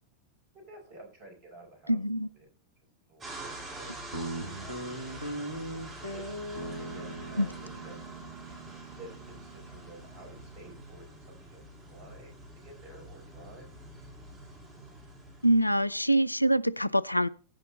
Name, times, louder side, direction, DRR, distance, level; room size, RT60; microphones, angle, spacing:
voice 1, 0.7-2.0 3.1-5.1 6.0-8.1 9.0-12.3 12.6-13.8, right 2 dB, 50° right, 5.4 m, -52 dB
voice 2, 1.9-2.3 7.4-7.5 15.4-17.3, right 1 dB, 85° left, 0.4 m, -25 dB
sound 1, 3.2-16.0, right 1 dB, 25° right, 4.6 m, -46 dB
Guitar, 4.1-10.8, right 1 dB, 90° right, 1.4 m, -40 dB
14.5 x 5.6 x 4.1 m
figure-of-eight pair, 90°, 0 cm